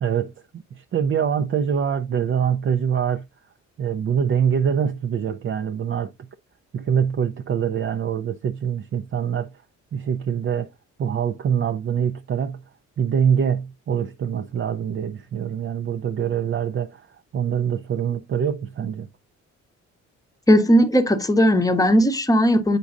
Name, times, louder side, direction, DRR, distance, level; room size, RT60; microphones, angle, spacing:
voice 1, 0.0-3.2 3.8-6.1 6.7-9.5 9.9-10.7 11.0-12.6 13.0-17.1 17.3-19.1, right 8 dB, 40° right, 0.5 m, -24 dB
voice 2, 20.5-22.8, equal, 10° left, 0.8 m, -17 dB
8.3 x 5.1 x 2.4 m
cardioid pair, 90°, 30 cm